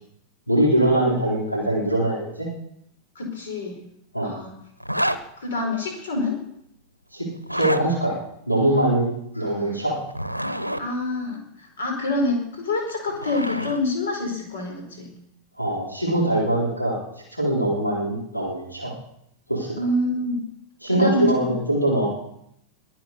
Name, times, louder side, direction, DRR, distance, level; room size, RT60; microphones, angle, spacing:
voice 1, 0.5-2.5 4.1-4.3 7.1-7.3 7.5-8.2 8.5-10.0 15.6-17.0 17.3-18.9 19.5-19.9 20.8-22.1, right 1 dB, 90° left, -4 dB, 4.1 m, -22 dB
voice 2, 3.1-3.8 4.2-4.5 5.4-6.4 9.6-9.7 10.8-11.4 11.8-15.1 19.7-20.4 20.9-21.3, left 2 dB, 65° left, 2 dB, 4.7 m, -26 dB
Zipper (clothing), 4.8-5.2 7.4-7.8 10.0-10.8 12.7-13.8, equal, 90° right, 0.8 m, -27 dB
22.0 x 7.8 x 6.8 m, 0.74 s
figure-of-eight pair, 90°, 0 cm